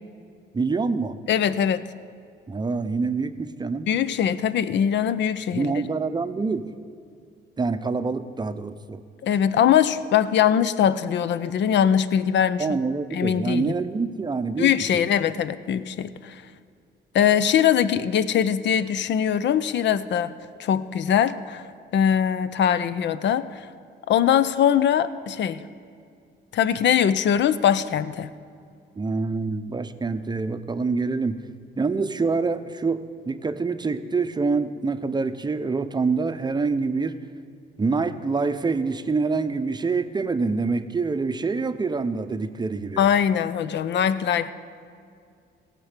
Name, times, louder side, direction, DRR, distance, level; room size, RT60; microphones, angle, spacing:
voice 1, 0.5-1.2 2.5-3.9 5.5-6.7 7.6-9.0 12.6-14.9 29.0-31.4 31.8-37.2 37.8-43.1, right 4 dB, 20° right, 11 dB, 0.7 m, -26 dB
voice 2, 1.3-1.9 3.9-5.8 9.2-12.8 13.1-13.7 14.6-16.4 17.1-20.3 20.6-21.6 21.9-23.7 24.1-25.6 26.5-28.3 43.0-44.5, left 9 dB, 65° left, 15 dB, 0.6 m, -22 dB
16.0 x 6.0 x 8.1 m, 2.3 s
cardioid pair, 90°, 20 cm